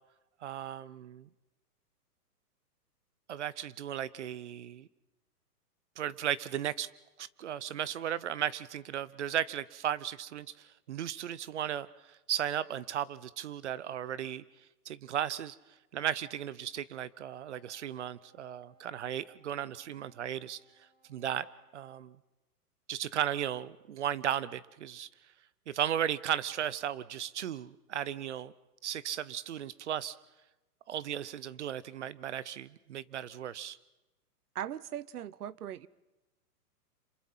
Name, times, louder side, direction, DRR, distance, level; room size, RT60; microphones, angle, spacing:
voice 1, 0.4-1.3 3.3-4.9 6.0-6.9 7.2-14.4 14.9-15.6 15.9-20.6 21.1-21.5 21.7-22.2 22.9-25.1 25.7-28.5 28.8-30.2 30.9-33.8, right 10 dB, 50° right, 19 dB, 0.8 m, -35 dB
Wind instrument woodwind instrument, 17.4-21.9, right 3 dB, 10° right, 6.7 m, -68 dB
voice 2, 34.5-35.9, right 11 dB, 75° right, 21 dB, 1.0 m, -39 dB
29.0 x 27.0 x 5.7 m, 1.0 s
hypercardioid pair, 170°, 46 cm